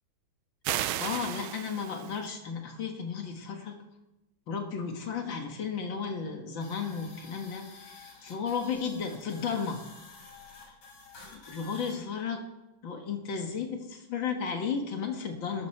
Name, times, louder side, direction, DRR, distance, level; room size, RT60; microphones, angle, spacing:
sound 1, 0.6-2.2, right 13 dB, 85° right, 1.4 m, -34 dB
voice 1, 1.0-3.8 4.5-9.8 11.3-12.4 12.8-15.7, left 6 dB, 70° left, 4 dB, 2.2 m, -34 dB
sound 2, 6.6-12.0, left 4 dB, 85° left, 3.7 m, -50 dB
12.5 x 12.5 x 4.5 m, 0.97 s
omnidirectional pair, 2.2 m